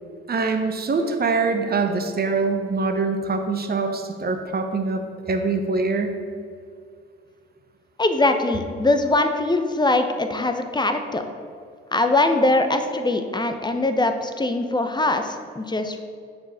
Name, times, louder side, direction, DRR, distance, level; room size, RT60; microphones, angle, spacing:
voice 1, 0.3-5.0 5.3-6.2, right 4 dB, 30° right, 5 dB, 1.0 m, -24 dB
voice 2, 8.0-11.2 11.9-16.0, left 2 dB, 15° left, 7 dB, 0.9 m, -22 dB
7.7 x 4.6 x 5.6 m, 2.2 s
hypercardioid pair, 45°, 31 cm